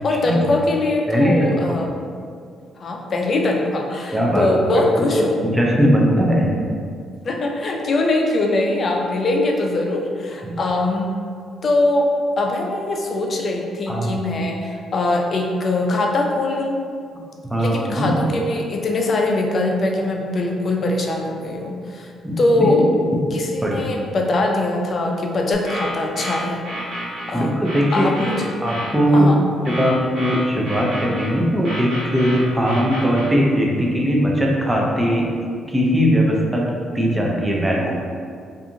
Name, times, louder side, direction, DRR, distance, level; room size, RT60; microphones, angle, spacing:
voice 1, 0.0-1.9 2.8-5.4 7.2-11.1 11.6-12.1 12.4-16.8 17.6-22.1 22.4-22.8 23.3-26.7 27.3-27.6 27.9-28.4 29.1-29.4, left 2 dB, 45° left, 1 dB, 0.4 m, -22 dB
voice 2, 1.1-1.8 4.1-4.5 5.1-6.7 10.4-10.6 13.9-14.1 17.5-18.2 22.2-22.8 23.6-23.8 27.3-29.3 29.7-35.3 35.7-36.6 36.9-37.9, equal, 10° right, -2 dB, 0.5 m, -19 dB
sound 1, 25.5-27.3 27.6-28.9 29.6-31.3 31.6-33.3, equal, 65° right, 1.2 m, -30 dB
2.5 x 2.4 x 2.8 m, 2.2 s
cardioid pair, 90°, 0 cm